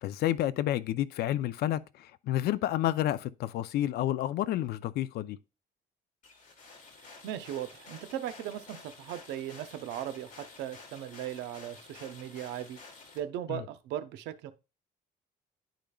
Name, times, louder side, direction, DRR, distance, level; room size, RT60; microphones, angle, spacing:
voice 1, 0.0-5.4 13.5-13.6, left 13 dB, 70° left, 0.5 m, -30 dB
sound 1, 6.2-13.2, left 3 dB, 50° left, 2.2 m, -51 dB
voice 2, 7.2-10.3 10.6-12.8 13.1-14.5, right 11 dB, 90° right, 0.7 m, -38 dB
10.5 x 5.0 x 2.3 m
cardioid pair, 110°, 17 cm